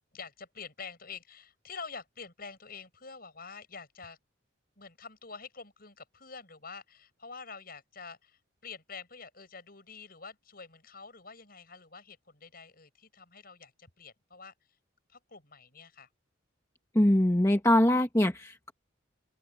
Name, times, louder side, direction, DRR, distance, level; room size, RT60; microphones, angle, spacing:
voice 1, 0.1-4.2 4.8-14.5 15.1-16.1, left 5 dB, 50° left, 7.5 m, -47 dB
voice 2, 16.9-18.7, left 1 dB, 15° left, 1.3 m, -23 dB
open air
head